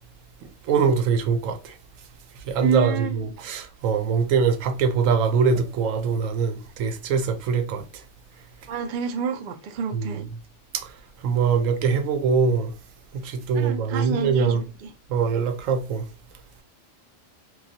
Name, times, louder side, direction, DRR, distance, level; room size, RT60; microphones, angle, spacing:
voice 1, 0.7-1.7 2.5-7.8 9.9-10.2 11.2-12.7 13.2-14.6 15.1-16.0, right 5 dB, 90° right, 1.0 m, -23 dB
voice 2, 2.6-3.2 8.7-10.3 13.5-14.9, right 6 dB, 65° right, 0.4 m, -29 dB
3.1 x 2.3 x 2.7 m
omnidirectional pair, 1.3 m